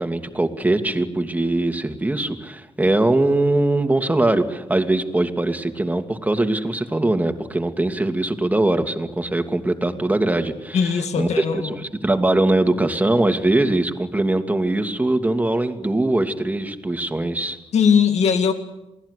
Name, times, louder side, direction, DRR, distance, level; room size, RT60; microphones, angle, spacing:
voice 1, 0.0-10.8 11.2-11.4 12.0-17.6, right 2 dB, 15° right, 6 dB, 2.6 m, -21 dB
voice 2, 10.7-11.8 17.7-18.5, left 6 dB, 80° left, 6 dB, 2.1 m, -19 dB
28.0 x 19.5 x 8.3 m, 0.95 s
cardioid pair, 80°, 11 cm